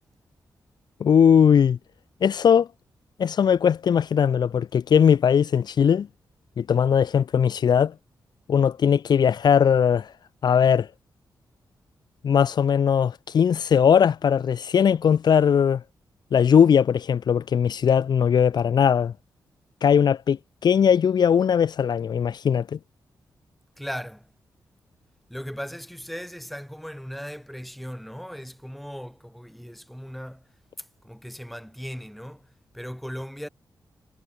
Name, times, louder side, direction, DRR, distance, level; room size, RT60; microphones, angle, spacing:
voice 1, 1.0-1.8 2.2-2.7 3.2-6.1 6.6-7.9 8.5-10.1 10.4-10.9 12.2-15.8 16.3-19.1 19.8-22.8, left 7 dB, 65° left, 1.5 m, -19 dB
voice 2, 23.8-24.3 25.3-30.4 30.8-32.5 32.7-33.5, equal, ahead, 5.6 m, -37 dB
wide cardioid pair, 140°, 8 cm